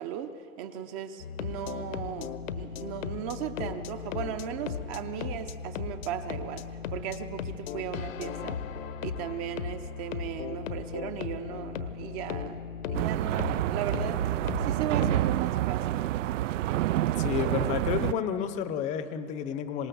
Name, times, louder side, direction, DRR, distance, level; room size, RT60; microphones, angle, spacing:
voice 1, 0.0-8.6 9.0-12.6 12.9-16.0, right 9 dB, 25° right, 9 dB, 0.7 m, -37 dB
sound 1, 1.2-15.4, left 6 dB, 75° left, 1.3 m, -37 dB
sound 2, 12.9-18.1, right 14 dB, 65° right, 0.5 m, -28 dB
voice 2, 17.2-19.9, left 8 dB, 20° left, 11 dB, 0.7 m, -31 dB
26.0 x 18.5 x 7.0 m, 2.6 s
supercardioid pair, 160°, 40 cm